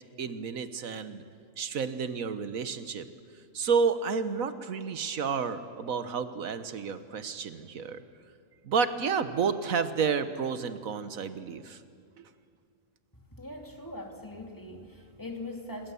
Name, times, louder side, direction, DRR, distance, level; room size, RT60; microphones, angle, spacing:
voice 1, 0.2-1.2 1.6-3.1 3.5-8.0 8.6-11.8 12.2-12.3, right 5 dB, 90° right, 10 dB, 1.5 m, -30 dB
voice 2, 13.1-15.9, left 1 dB, 15° left, 2 dB, 2.5 m, -41 dB
27.0 x 22.0 x 7.0 m, 2.3 s
omnidirectional pair, 1.4 m